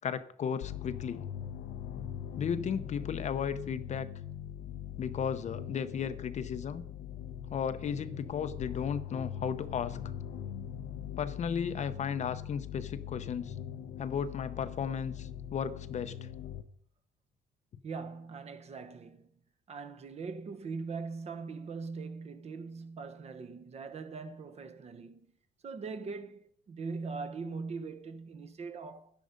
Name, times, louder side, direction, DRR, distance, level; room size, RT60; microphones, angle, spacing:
voice 1, 0.0-1.2 2.4-4.1 5.0-6.8 7.5-10.0 11.2-13.5 14.0-16.3, left 7 dB, 45° left, 0.8 m, -35 dB
sound 1, 0.6-16.6, left 9 dB, 85° left, 1.0 m, -41 dB
voice 2, 17.8-19.3 19.7-25.2 25.6-29.1, right 4 dB, 40° right, 1.1 m, -41 dB
11.0 x 10.5 x 5.2 m
cardioid pair, 110°, 17 cm